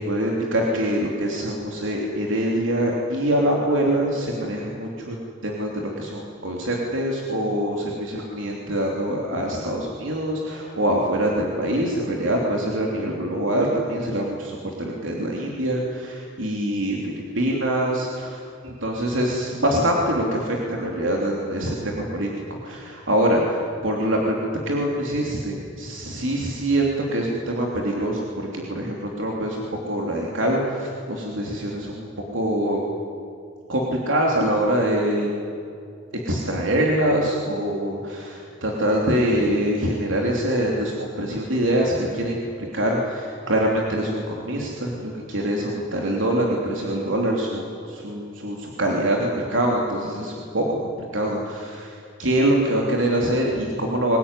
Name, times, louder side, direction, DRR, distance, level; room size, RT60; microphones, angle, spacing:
voice 1, 0.0-32.8 33.7-35.4 36.2-54.2, right 1 dB, 85° right, -1 dB, 3.1 m, -24 dB
23.5 x 20.0 x 9.9 m, 2.5 s
head